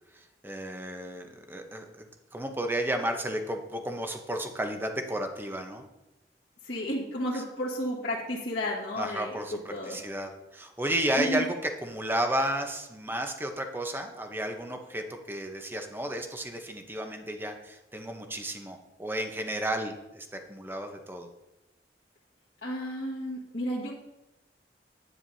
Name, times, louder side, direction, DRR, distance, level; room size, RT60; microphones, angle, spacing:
voice 1, 0.1-5.8 7.3-7.4 9.0-11.6 11.8-21.3, right 1 dB, 15° right, 5 dB, 0.8 m, -33 dB
voice 2, 6.6-10.0 11.2-11.5 22.6-23.9, equal, 60° left, -6 dB, 1.7 m, -32 dB
10.0 x 9.4 x 2.8 m, 0.96 s
head